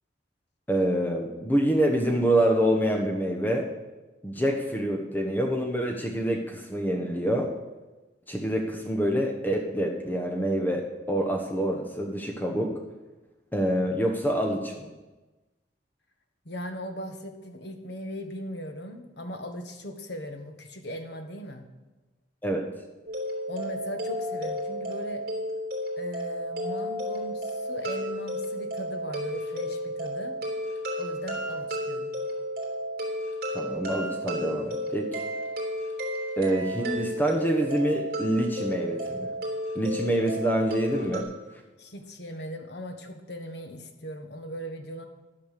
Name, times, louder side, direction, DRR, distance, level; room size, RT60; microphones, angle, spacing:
voice 1, 0.7-3.6 4.2-7.5 8.3-12.7 13.5-14.9 22.4-22.6 33.5-35.2 36.4-39.3 39.7-41.3, right 1 dB, 10° left, 1 dB, 1.0 m, -26 dB
voice 2, 16.4-21.7 23.5-25.2 26.0-30.4 31.0-32.1 41.8-45.1, equal, 70° left, 5 dB, 1.5 m, -38 dB
sound 1, 23.1-41.2, equal, 50° right, 2.9 m, -32 dB
11.0 x 8.8 x 6.7 m, 1.1 s
head